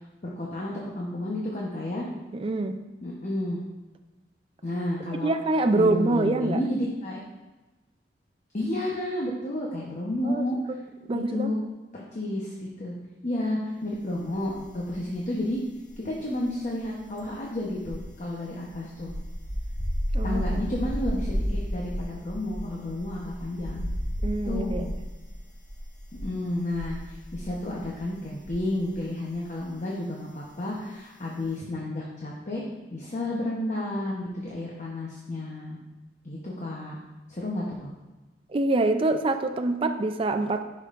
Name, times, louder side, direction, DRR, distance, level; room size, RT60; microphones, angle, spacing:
voice 1, 0.4-2.1 3.0-3.6 4.6-5.3 5.7-7.2 8.5-10.7 11.1-11.6 11.9-12.9 13.2-15.6 16.0-19.1 20.2-23.9 24.4-24.9 26.2-32.6 32.9-35.8 36.2-37.0 37.3-37.9, left 1 dB, 45° left, -3 dB, 0.9 m, -31 dB
voice 2, 2.3-2.8 5.1-6.6 10.2-10.8 11.1-11.6 20.1-20.6 24.2-24.9 38.5-40.6, right 2 dB, 30° right, 7 dB, 0.4 m, -25 dB
sound 1, 14.4-15.2 15.5-29.0 29.3-29.6, equal, 60° left, 1.3 m, -33 dB
10.5 x 5.4 x 2.5 m, 1.1 s
head